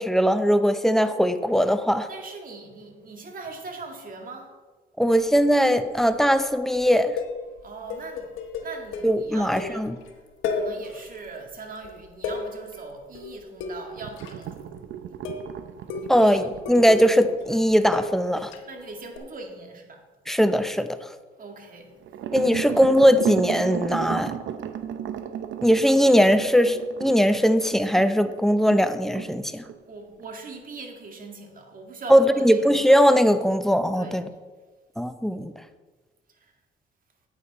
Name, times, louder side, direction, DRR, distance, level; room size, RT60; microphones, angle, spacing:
voice 1, 0.0-2.1 5.0-7.1 9.0-10.0 16.1-18.5 20.3-21.0 22.3-24.3 25.6-29.6 32.1-34.3 35.0-35.5, equal, ahead, 10 dB, 0.6 m, -20 dB
voice 2, 2.1-4.5 7.6-8.3 8.6-9.9 10.5-14.6 16.0-16.4 18.7-20.0 21.4-21.9 29.8-32.7 34.0-34.2, right 3 dB, 45° right, 2 dB, 2.1 m, -40 dB
sound 1, 5.1-5.7 6.0-6.3 6.6-10.1 10.4-11.3 11.6-14.8 15.2-15.5 15.9-18.7 19.2-19.3, left 4 dB, 90° left, 1.2 m, -33 dB
sound 2, 14.0-18.6 22.0-28.9 29.1-29.3 29.7-29.8 30.2-30.3, right 9 dB, 75° right, 0.8 m, -34 dB
9.7 x 8.6 x 4.1 m, 1.3 s
cardioid pair, 90°, 20 cm